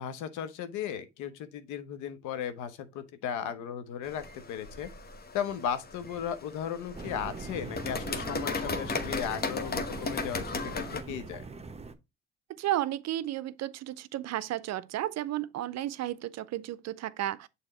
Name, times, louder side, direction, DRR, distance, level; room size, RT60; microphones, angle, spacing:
voice 1, 0.0-4.9 5.3-11.4, left 9 dB, 85° left, 1.0 m, -36 dB
sound 1, 4.0-11.0, left 3 dB, 30° left, 1.1 m, -36 dB
sound 2, 6.9-11.9, right 4 dB, 20° right, 1.0 m, -42 dB
voice 2, 12.6-17.5, right 13 dB, 60° right, 0.5 m, -33 dB
6.8 x 3.5 x 4.2 m
supercardioid pair, 75°, 30 cm